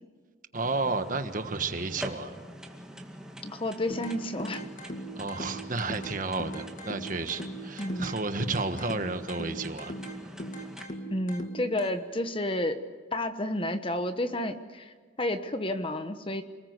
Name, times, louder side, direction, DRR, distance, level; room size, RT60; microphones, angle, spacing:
voice 1, 0.5-2.3 5.1-9.9, right 3 dB, 45° right, 8 dB, 1.4 m, -32 dB
sound 1, 0.6-10.8, equal, 5° right, 2.1 m, -45 dB
voice 2, 3.4-4.7 7.8-8.1 11.1-12.8 13.1-16.4, left 1 dB, 30° left, 9 dB, 1.2 m, -31 dB
sound 2, 3.9-11.9, right 1 dB, 45° left, 2.1 m, -40 dB
28.5 x 20.0 x 8.1 m, 1.5 s
head